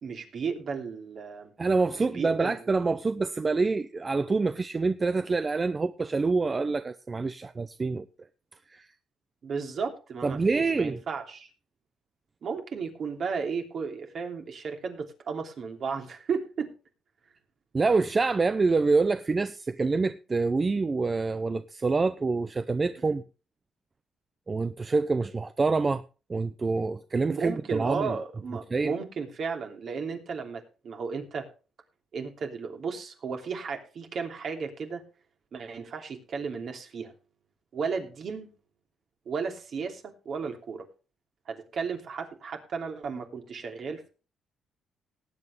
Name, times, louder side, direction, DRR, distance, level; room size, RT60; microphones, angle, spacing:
voice 1, 0.0-1.5 1.9-2.6 9.4-11.5 12.4-16.7 23.1-23.2 27.3-31.5 32.1-35.0 35.5-37.1 37.7-38.5 39.3-40.9 41.5-44.1, right 5 dB, 55° right, 2.9 m, -34 dB
voice 2, 1.6-8.1 8.7-8.9 10.2-11.0 17.7-23.2 24.5-26.0 26.3-28.1 28.7-28.9, right 3 dB, 30° right, 0.6 m, -26 dB
19.0 x 8.7 x 3.3 m
cardioid pair, 90°, 0 cm